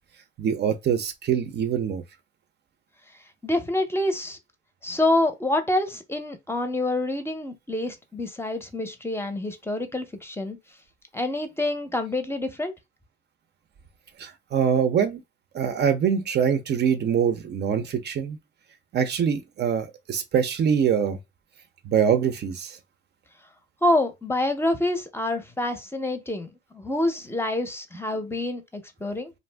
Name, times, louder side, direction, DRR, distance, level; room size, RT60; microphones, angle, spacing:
voice 1, 0.4-2.0 14.2-15.2 15.5-18.4 18.9-21.2 21.8-22.8, right 7 dB, 60° right, 0.6 m, -24 dB
voice 2, 3.4-4.4 4.8-10.6 11.1-12.7 23.8-29.3, left 1 dB, 10° left, 0.6 m, -27 dB
2.5 x 2.0 x 3.3 m
cardioid pair, 90°, 20 cm